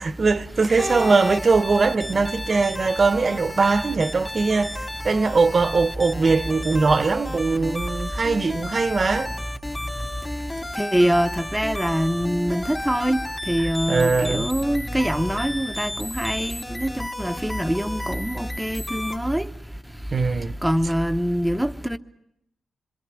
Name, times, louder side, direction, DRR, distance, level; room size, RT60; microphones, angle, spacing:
voice 1, 0.0-9.3 13.6-14.5 20.1-20.6, right 4 dB, 45° right, 0.9 m, -21 dB
sound 1, 0.8-19.2, left 1 dB, 20° left, 2.2 m, -33 dB
voice 2, 10.8-13.2 13.5-19.5 20.6-22.0, equal, 5° right, 0.9 m, -24 dB
26.5 x 24.0 x 6.2 m
cardioid pair, 75°, 0 cm